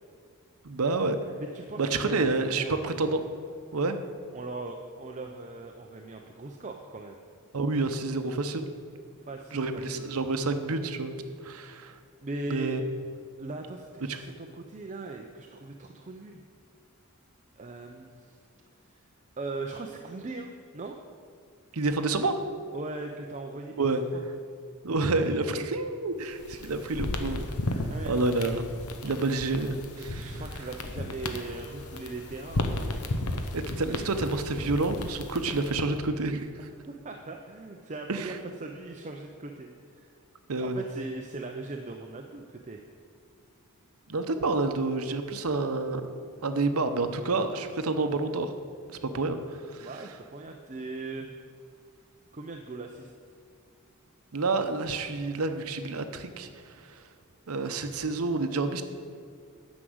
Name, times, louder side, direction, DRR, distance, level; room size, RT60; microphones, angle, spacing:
voice 1, 0.6-1.2 1.8-3.2 3.7-4.0 7.5-8.7 9.5-11.2 11.4-12.0 12.5-12.8 14.0-14.2 21.7-22.4 23.8-24.0 24.8-28.7 29.0-30.4 33.5-36.5 38.1-38.4 40.5-40.8 44.1-46.1 46.4-48.5 48.9-49.9 54.3-57.1 57.5-58.8, right 3 dB, 75° right, 8 dB, 0.8 m, -29 dB
voice 2, 1.4-2.2 2.5-2.8 4.3-7.2 9.3-9.6 11.5-11.7 12.2-12.8 13.4-16.4 17.6-18.4 18.9-19.0 19.4-21.0 22.7-23.8 24.1-24.2 27.9-28.5 30.1-32.7 33.9-34.1 36.8-38.3 38.6-40.1 40.6-42.8 49.8-51.3 52.3-53.1, right 2 dB, 35° right, 3 dB, 0.6 m, -39 dB
sound 1, 26.2-36.0, left 2 dB, 85° left, 0.9 m, -34 dB
9.8 x 6.2 x 7.9 m, 2.2 s
head